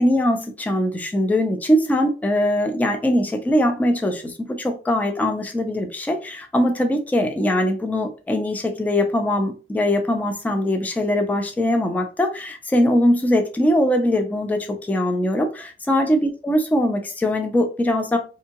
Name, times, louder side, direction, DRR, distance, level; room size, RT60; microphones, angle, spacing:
voice 1, 0.0-18.2, left 1 dB, 10° left, 0.4 m, -21 dB
3.4 x 2.7 x 2.9 m
wide cardioid pair, 170°, 21 cm